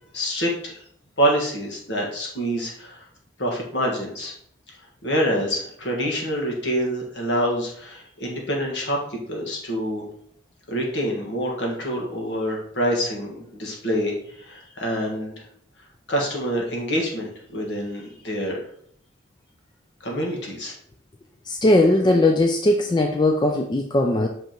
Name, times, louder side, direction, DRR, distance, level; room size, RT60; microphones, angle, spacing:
voice 1, 0.1-0.8 1.2-3.0 3.4-4.3 5.0-10.0 10.7-15.3 16.1-18.6 20.0-20.7, equal, 60° left, -1 dB, 1.6 m, -26 dB
voice 2, 21.5-24.3, left 1 dB, 20° left, 4 dB, 0.4 m, -19 dB
5.9 x 5.3 x 3.0 m, 0.65 s
head